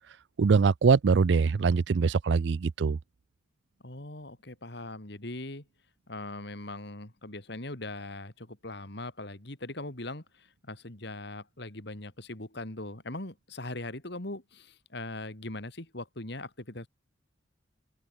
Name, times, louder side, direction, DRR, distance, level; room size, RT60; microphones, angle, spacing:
voice 1, 0.4-3.0, right 5 dB, 60° right, 0.4 m, -23 dB
voice 2, 3.8-5.6 6.1-16.9, left 2 dB, 60° left, 2.9 m, -40 dB
head